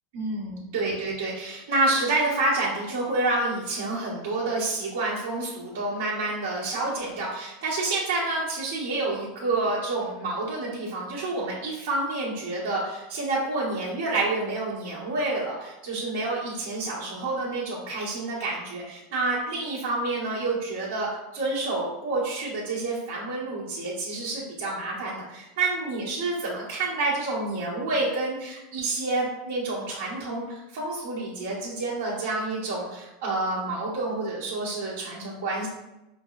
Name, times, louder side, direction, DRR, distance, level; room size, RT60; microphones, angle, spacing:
voice 1, 0.1-35.7, right 2 dB, 70° right, -9 dB, 1.3 m, -28 dB
5.2 x 2.0 x 2.4 m, 0.93 s
supercardioid pair, 155°, 0 cm